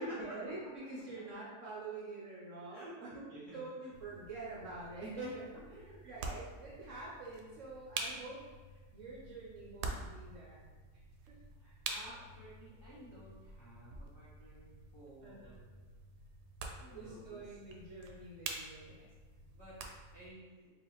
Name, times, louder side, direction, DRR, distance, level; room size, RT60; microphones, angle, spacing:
voice 1, 0.0-3.2 3.5-5.5 6.0-8.4 8.7-10.6 11.2-11.3 11.6-11.7 15.2-15.5 16.9-19.0, right 2 dB, 60° right, -6 dB, 1.0 m, -46 dB
voice 2, 2.7-3.6 11.6-15.7 16.8-17.6 18.8-19.0 19.5-19.8 20.1-20.7, right 1 dB, 20° left, -11 dB, 1.2 m, -54 dB
sound 1, 3.9-20.3, right 3 dB, 85° right, 1.2 m, -47 dB
4.5 x 3.1 x 3.0 m, 1.4 s
omnidirectional pair, 1.7 m